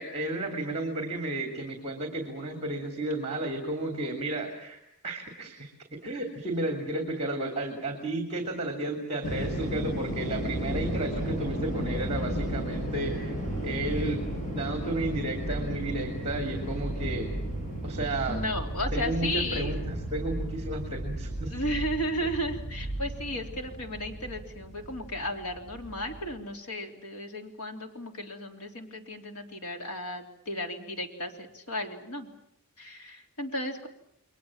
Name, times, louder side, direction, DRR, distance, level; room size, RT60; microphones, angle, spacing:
voice 1, 0.0-14.2 14.5-17.3 17.8-18.4 18.9-21.5, right 2 dB, 30° right, 5 dB, 3.0 m, -33 dB
sound 1, 9.2-26.4, right 1 dB, 35° left, 7.5 m, -34 dB
voice 2, 18.3-19.7 21.5-32.3 32.8-33.9, equal, 80° left, 4 dB, 3.6 m, -34 dB
29.5 x 22.0 x 7.4 m, 0.76 s
head